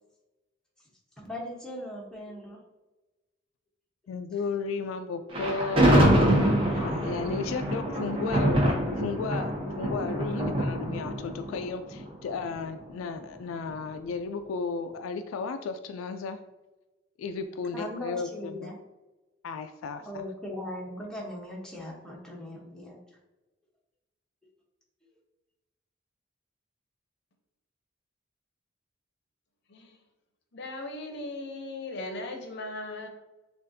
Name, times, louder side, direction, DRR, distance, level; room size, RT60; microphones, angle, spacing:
voice 1, 1.2-2.6 7.9-8.5 17.7-18.8 20.0-23.0, left 1 dB, 5° left, -3 dB, 0.9 m, -39 dB
voice 2, 4.1-6.2 6.7-8.6 8.9-16.4 17.2-18.7 19.4-20.2, left 4 dB, 85° left, 9 dB, 0.3 m, -34 dB
Thunder, 5.3-12.5, right 1 dB, 25° right, 0.9 m, -25 dB
voice 3, 30.5-33.1, left 2 dB, 60° left, 4 dB, 0.6 m, -38 dB
6.4 x 2.4 x 2.6 m, 1.1 s
head